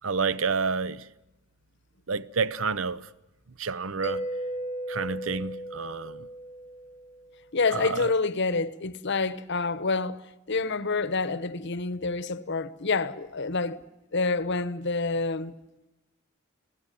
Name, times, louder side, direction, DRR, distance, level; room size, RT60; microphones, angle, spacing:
voice 1, 0.0-1.0 2.1-3.0 3.6-4.2 4.9-6.2 7.7-8.0, right 5 dB, 70° right, 0.8 m, -29 dB
Mallet percussion, 4.0-7.5, right 1 dB, 30° left, 0.8 m, -36 dB
voice 2, 7.5-10.2 10.5-13.8 14.1-15.5, left 3 dB, 55° left, 1.0 m, -27 dB
29.5 x 17.5 x 9.3 m
head